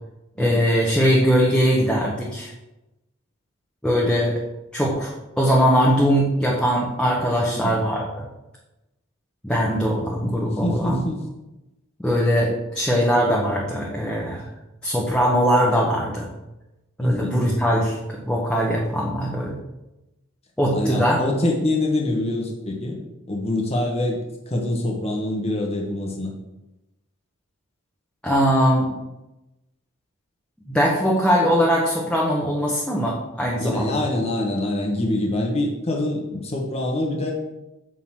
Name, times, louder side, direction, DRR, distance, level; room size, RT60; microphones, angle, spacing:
voice 1, 0.4-2.5 3.8-4.4 4.7-5.1 5.4-8.2 9.4-11.0 12.0-14.4 14.8-16.3 17.0-19.6 20.6-21.2 28.2-28.9 30.7-34.0, equal, 5° left, -4 dB, 1.3 m, -21 dB
voice 2, 7.4-7.8 10.5-11.2 17.0-17.4 20.7-23.0 23.3-26.3 33.6-37.3, left 1 dB, 30° left, -1 dB, 1.3 m, -25 dB
9.5 x 4.1 x 7.4 m, 0.98 s
head